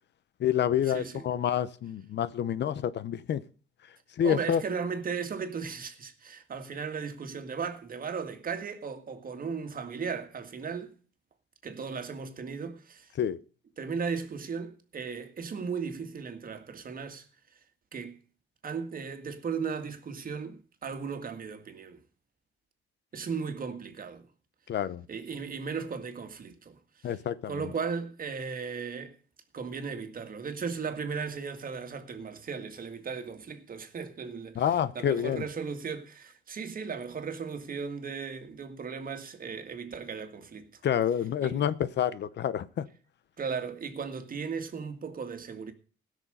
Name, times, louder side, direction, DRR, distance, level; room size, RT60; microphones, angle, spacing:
voice 1, 0.4-3.4 4.2-4.6 13.2-13.4 24.7-25.0 27.0-27.7 34.6-35.4 40.8-42.8, left 9 dB, 60° left, 0.8 m, -28 dB
voice 2, 4.2-10.9 11.6-13.1 13.8-17.3 17.9-18.2 18.6-22.0 23.1-24.3 25.1-26.8 27.0-27.1 27.5-29.2 29.5-34.6 34.9-40.8 41.4-41.6 43.4-45.7, right 5 dB, 45° right, 2.0 m, -36 dB
16.5 x 6.4 x 6.5 m
cardioid pair, 90°, 20 cm